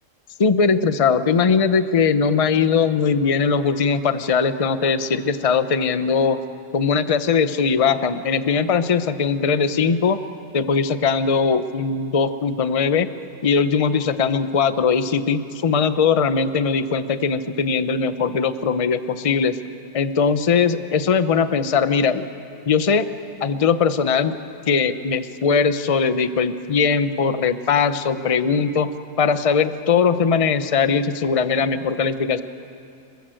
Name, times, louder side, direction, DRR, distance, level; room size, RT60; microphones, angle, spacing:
voice 1, 0.4-6.4 6.7-10.2 10.5-13.1 13.4-19.5 19.9-22.2 22.7-23.1 23.4-24.4 24.7-28.9 29.2-32.4, left 5 dB, 35° left, 11 dB, 0.6 m, -20 dB
27.5 x 21.0 x 7.7 m, 2.5 s
omnidirectional pair, 1.7 m